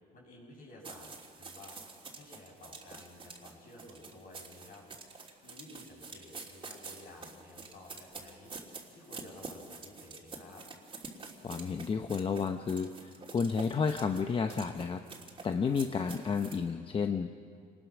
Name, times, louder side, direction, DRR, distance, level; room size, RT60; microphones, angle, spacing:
voice 1, 0.0-1.8 2.1-4.8 5.4-8.5 8.9-10.6 15.6-15.8, left 2 dB, 55° left, -1 dB, 7.8 m, -53 dB
sound 1, 0.8-16.6, right 4 dB, 30° right, 3.0 m, -47 dB
voice 2, 11.4-15.0 15.4-17.3, left 5 dB, 30° left, 6 dB, 0.8 m, -31 dB
27.5 x 20.0 x 6.2 m, 2.2 s
cardioid pair, 110°, 17 cm